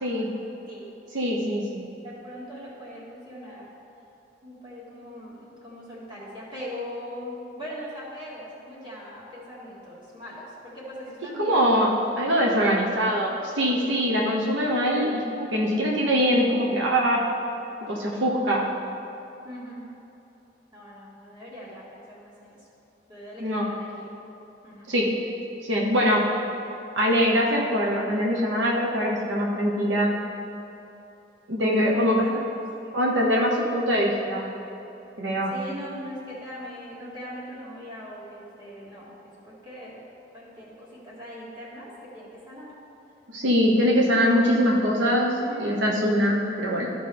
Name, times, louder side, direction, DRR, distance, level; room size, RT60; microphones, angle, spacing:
voice 1, 0.0-0.4 1.1-1.8 11.4-11.9 12.2-17.3 17.9-18.7 23.4-23.7 24.9-25.2 25.7-26.3 27.0-30.2 31.5-32.2 32.9-34.5 35.2-35.5 43.3-46.9, equal, 85° right, -2 dB, 1.0 m, -23 dB
voice 2, 1.2-1.7 2.0-3.7 4.4-12.5 19.4-19.8 20.7-22.6 23.1-24.1 24.6-24.9 31.8-32.4 32.8-33.0 33.6-33.7 35.5-39.1 39.4-40.0 40.3-42.7 45.3-45.8, equal, 25° right, -7 dB, 2.0 m, -40 dB
13.5 x 5.2 x 3.4 m, 2.9 s
head